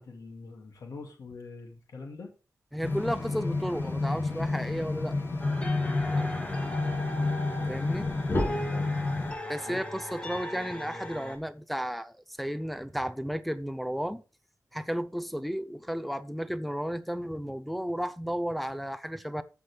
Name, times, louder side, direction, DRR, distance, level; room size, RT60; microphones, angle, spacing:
voice 1, 0.0-2.3 6.1-6.3 8.4-8.9 9.6-9.8, left 3 dB, 70° left, 2.3 m, -44 dB
voice 2, 2.7-5.2 7.7-8.1 9.5-14.2 14.7-19.4, equal, ahead, 0.5 m, -33 dB
sound 1, 2.8-9.3, left 3 dB, 40° left, 2.6 m, -30 dB
sound 2, 5.4-11.4, equal, 20° left, 1.5 m, -38 dB
14.5 x 6.0 x 3.4 m
wide cardioid pair, 165°, 6 cm